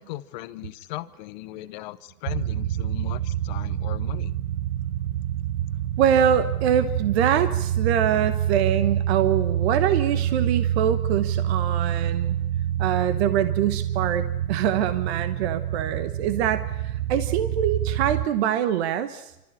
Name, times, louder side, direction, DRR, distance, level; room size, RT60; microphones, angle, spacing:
voice 1, 0.0-4.3, left 16 dB, 30° left, 14 dB, 0.8 m, -37 dB
sound 1, 2.3-18.3, right 11 dB, 85° right, 0.9 m, -27 dB
voice 2, 6.0-12.4 12.8-19.3, right 9 dB, 45° right, 11 dB, 1.2 m, -24 dB
28.0 x 14.0 x 9.9 m, 0.93 s
supercardioid pair, 160°, 45 cm